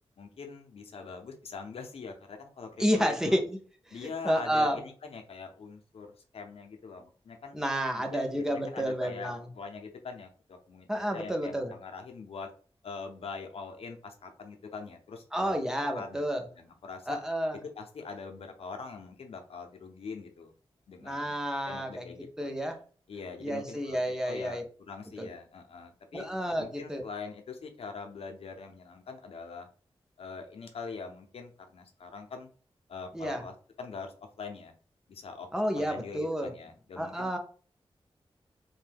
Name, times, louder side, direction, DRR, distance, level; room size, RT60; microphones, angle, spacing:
voice 1, 0.2-3.4 3.9-7.6 8.1-12.5 12.8-15.6 15.9-17.2 17.8-20.5 20.9-21.3 21.6-22.6 23.1-24.0 24.2-24.6 24.9-26.3 26.6-29.7 30.2-32.5 32.9-34.7 35.1-35.5 35.7-37.4, left 4 dB, 75° left, 4 dB, 0.6 m, -43 dB
voice 2, 2.8-3.6 3.9-4.8 7.5-9.5 10.9-11.7 15.3-16.5 17.1-17.6 21.0-22.1 22.4-22.8 23.4-24.6 25.2-25.3 26.1-27.0 33.1-33.4 35.5-36.5 37.0-37.4, equal, 5° right, 3 dB, 0.5 m, -30 dB
2.6 x 2.2 x 3.3 m, 0.41 s
wide cardioid pair, 165°, 10 cm